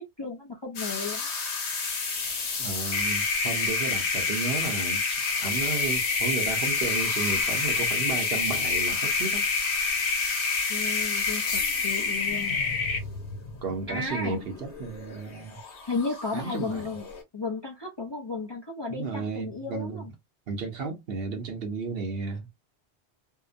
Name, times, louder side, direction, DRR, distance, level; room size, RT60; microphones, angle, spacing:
voice 1, 0.2-1.3 10.7-12.6 13.9-14.4 15.9-17.1 17.3-20.1, left 4 dB, 30° left, 0.5 m, -34 dB
sound 1, 0.8-17.2, left 4 dB, 75° left, 1.2 m, -33 dB
voice 2, 2.6-9.5 13.6-15.6 16.3-16.9 18.9-20.0 20.5-22.5, right 4 dB, 60° right, 0.9 m, -33 dB
sound 2, 2.9-13.0, left 4 dB, 60° left, 0.7 m, -28 dB
2.8 x 2.1 x 2.4 m
omnidirectional pair, 1.2 m